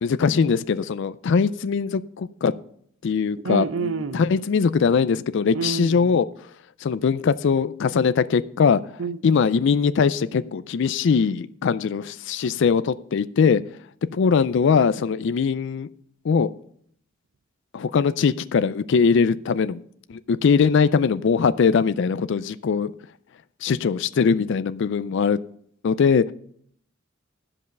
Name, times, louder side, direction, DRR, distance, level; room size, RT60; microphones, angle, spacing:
voice 1, 0.0-2.5 3.0-6.3 6.8-8.9 9.2-13.6 14.1-15.9 16.2-16.5 17.7-19.8 20.1-22.9 23.6-25.4 25.8-26.3, left 5 dB, 65° left, 0.4 m, -21 dB
voice 2, 3.4-4.3 5.5-6.1 9.0-9.2, right 5 dB, 85° right, 0.7 m, -28 dB
12.5 x 5.4 x 6.5 m
head